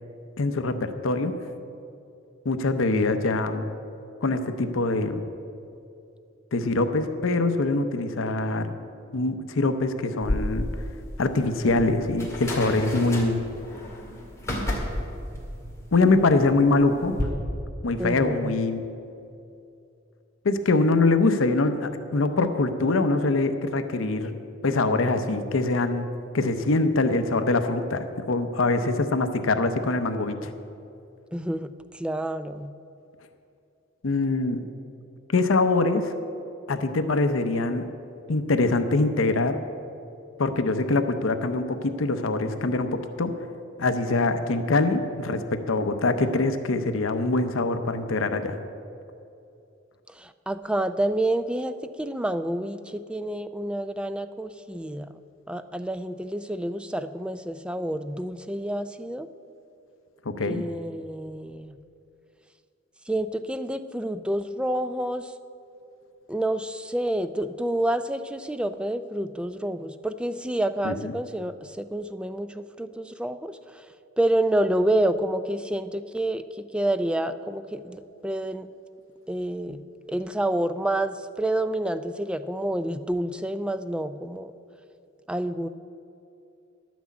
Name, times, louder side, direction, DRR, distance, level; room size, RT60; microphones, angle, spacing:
voice 1, 0.4-1.3 2.4-3.7 4.2-5.3 6.5-8.8 9.1-10.7 11.2-13.5 15.9-17.1 17.8-18.8 20.4-24.3 24.6-30.5 34.0-34.7 35.3-36.1 36.7-37.9 38.3-39.6 40.4-43.3 43.8-48.6 60.3-60.6 70.8-71.1, left 3 dB, 75° left, 9 dB, 0.7 m, -24 dB
sound 1, 10.2-17.2, left 1 dB, 15° left, 1.8 m, -32 dB
voice 2, 18.0-18.5 31.3-31.7 31.9-32.7 50.2-55.1 55.5-59.3 60.4-61.7 63.1-65.3 66.3-73.8 74.2-76.4 76.7-78.7 79.3-79.8 80.1-84.5 85.3-85.7, right 1 dB, 5° right, 11 dB, 0.3 m, -28 dB
12.0 x 6.1 x 8.3 m, 2.6 s
head